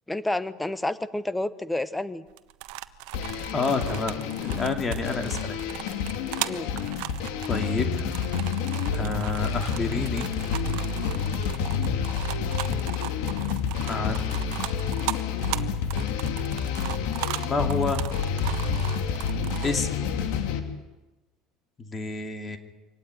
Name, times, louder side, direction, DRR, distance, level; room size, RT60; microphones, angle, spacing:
voice 1, 0.1-2.2 6.5-6.7 19.5-19.6, left 2 dB, 5° left, 14 dB, 1.1 m, -29 dB
sound 1, 2.3-19.7, right 18 dB, 75° right, 1.3 m, -37 dB
sound 2, 3.1-20.6, left 6 dB, 75° left, 3.2 m, -29 dB
voice 2, 3.5-4.1 4.4-5.6 7.5-8.1 8.9-10.3 13.9-15.0 17.4-18.0 19.6-20.1 21.8-22.6, left 3 dB, 20° left, 6 dB, 2.8 m, -29 dB
25.0 x 19.0 x 9.5 m, 1.1 s
cardioid pair, 140°, 0 cm